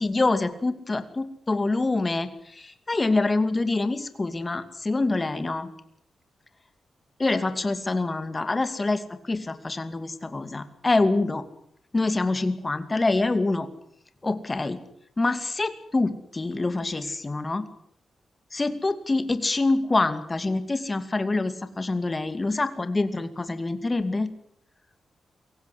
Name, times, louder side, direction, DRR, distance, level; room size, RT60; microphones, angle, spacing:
voice 1, 0.0-5.7 7.2-11.4 11.9-13.7 14.2-14.8 15.2-17.6 18.5-24.3, left 2 dB, 25° left, 10 dB, 2.6 m, -26 dB
23.5 x 17.5 x 8.1 m, 0.71 s
cardioid pair, 90°, 0 cm